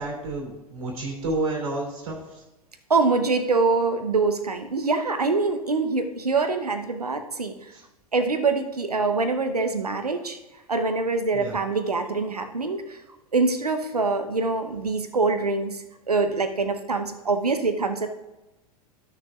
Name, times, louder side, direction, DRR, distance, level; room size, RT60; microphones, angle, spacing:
voice 1, 0.0-2.4 7.7-7.8 11.3-11.5, right 2 dB, 60° right, -1 dB, 2.7 m, -30 dB
voice 2, 2.9-7.6 8.1-10.4 10.7-13.0 13.3-18.1, right 3 dB, 80° right, 8 dB, 0.9 m, -24 dB
15.0 x 6.6 x 2.4 m, 1.0 s
figure-of-eight pair, 90°, 20 cm